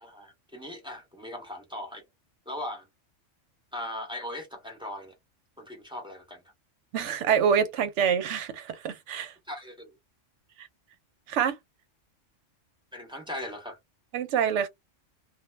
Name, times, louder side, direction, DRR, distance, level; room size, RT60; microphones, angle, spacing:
voice 1, 0.0-2.0 2.5-2.9 3.7-5.1 5.6-6.4 9.5-9.9 12.9-13.8, left 1 dB, 5° right, 0.6 m, -39 dB
voice 2, 6.9-9.3 10.6-10.7 11.3-11.6 14.1-14.7, right 7 dB, 75° right, 0.9 m, -26 dB
2.3 x 2.1 x 3.1 m
omnidirectional pair, 1.3 m